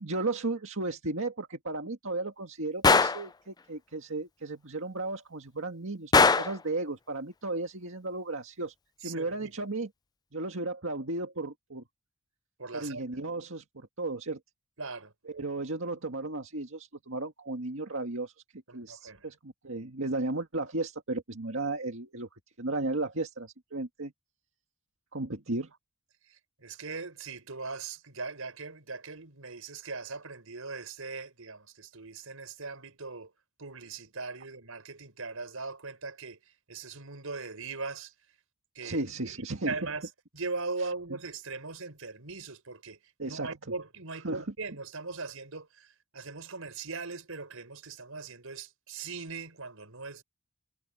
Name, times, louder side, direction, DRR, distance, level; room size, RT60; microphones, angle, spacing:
voice 1, 0.0-9.9 10.3-11.8 12.7-14.4 15.3-18.3 18.7-22.3 22.6-24.1 25.1-25.7 38.8-39.7 43.2-43.5 44.2-44.4, right 2 dB, 65° right, 2.0 m, -34 dB
Gunshot gunfire, 2.8-3.3 6.1-6.6, left 4 dB, 20° left, 0.4 m, -20 dB
voice 2, 9.0-9.6 12.6-13.2 14.8-15.1 18.7-19.3 26.3-33.3 33.6-38.1 38.7-50.2, right 4 dB, 85° right, 4.8 m, -40 dB
head